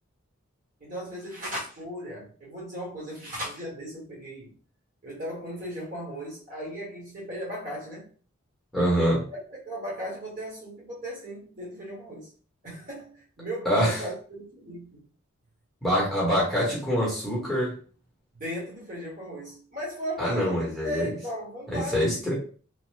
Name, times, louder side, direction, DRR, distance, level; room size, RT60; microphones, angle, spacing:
voice 1, 0.8-4.5 5.0-8.0 9.3-12.3 12.6-15.1 18.4-22.3, equal, 40° right, -4 dB, 1.2 m, -36 dB
voice 2, 8.7-9.2 13.6-14.0 15.8-17.8 20.2-21.1 21.7-22.3, equal, ahead, -7 dB, 0.9 m, -25 dB
3.0 x 2.1 x 3.1 m, 0.41 s
head